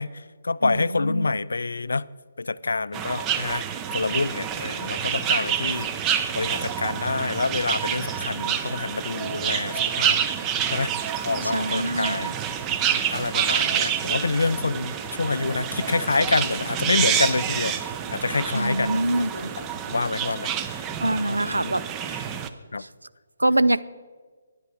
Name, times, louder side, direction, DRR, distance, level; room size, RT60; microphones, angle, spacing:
voice 1, 0.0-2.1 2.4-3.7 3.9-5.9 6.1-10.2 10.7-10.9 11.2-12.3 13.1-17.8 18.1-19.0 19.9-20.9 21.3-21.8 22.1-22.2 22.7-22.8, left 3 dB, 70° left, 19 dB, 0.3 m, -27 dB
voice 2, 0.6-1.3 11.4-12.3 18.5-19.5 21.0-21.8 22.8-22.9 23.4-23.8, right 1 dB, 85° right, 17 dB, 0.4 m, -24 dB
sound 1, 2.9-22.5, right 8 dB, 20° right, 0.5 m, -28 dB
sound 2, 13.3-19.9, left 4 dB, 50° left, 0.9 m, -45 dB
10.5 x 10.0 x 4.9 m, 1.5 s
figure-of-eight pair, 145°, 0 cm